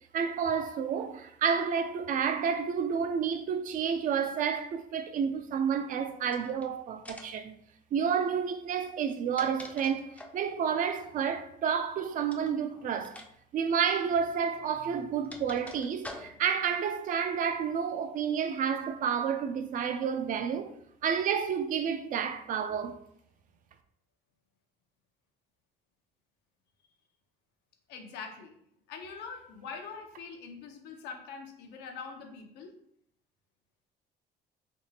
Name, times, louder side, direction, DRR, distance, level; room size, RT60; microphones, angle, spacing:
voice 1, 0.1-7.5 7.9-13.2 13.5-20.7 21.0-22.9, right 7 dB, 55° right, 0.4 m, -30 dB
sound 1, 6.3-6.7 7.1-7.5 9.0-10.5 12.3-12.6 13.0-13.3 13.6-13.7 14.7-16.6, left 2 dB, 10° left, 0.4 m, -46 dB
voice 2, 12.4-13.1 16.1-16.4 27.9-28.6 28.9-32.7, left 5 dB, 85° left, 0.6 m, -44 dB
3.5 x 2.8 x 2.8 m
cardioid pair, 110°, 17 cm